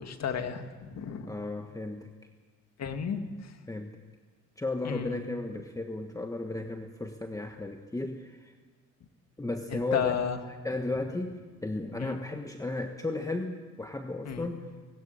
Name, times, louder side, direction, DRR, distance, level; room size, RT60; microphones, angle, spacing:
voice 1, 0.0-1.3 2.8-3.5 4.8-5.2 9.7-10.4 12.0-12.1 14.3-14.5, left 7 dB, 60° left, 7 dB, 2.3 m, -33 dB
voice 2, 1.3-2.1 3.7-4.0 4.6-8.5 9.4-10.2 10.6-14.7, left 2 dB, 10° left, 5 dB, 1.4 m, -34 dB
21.0 x 16.0 x 9.9 m, 1.4 s
cardioid pair, 90°, 30 cm